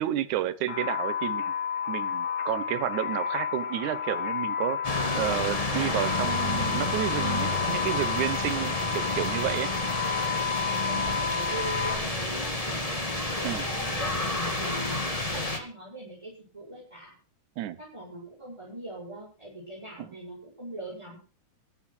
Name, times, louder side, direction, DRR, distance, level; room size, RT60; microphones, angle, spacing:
voice 1, 0.0-1.5 1.9-9.7 13.4-13.6 17.6-17.8 20.0-20.2, right 12 dB, 90° right, 15 dB, 2.4 m, -31 dB
sound 1, 0.7-11.9, left 8 dB, 80° left, 3.5 m, -31 dB
sound 2, 4.8-15.6, left 1 dB, 15° left, 1.7 m, -30 dB
voice 2, 10.0-10.5 10.8-13.1 13.4-17.1 17.8-21.2, right 1 dB, 10° right, -5 dB, 6.8 m, -41 dB
14.5 x 11.5 x 6.2 m, 0.38 s
omnidirectional pair, 3.3 m